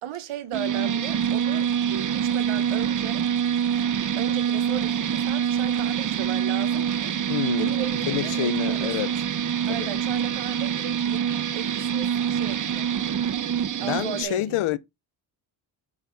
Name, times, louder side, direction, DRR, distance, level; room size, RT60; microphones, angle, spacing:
voice 1, 0.0-3.2 3.7-3.9 4.2-7.1 7.6-9.1 9.7-11.2 11.5-13.0 13.8-14.7, right 10 dB, 90° right, 1.3 m, -36 dB
sound 1, 0.5-14.2, right 8 dB, 40° right, 0.7 m, -25 dB
voice 2, 7.3-9.1 9.7-9.9 13.8-14.8, left 14 dB, 85° left, 0.7 m, -28 dB
8.7 x 4.4 x 3.9 m
cardioid pair, 80°, 48 cm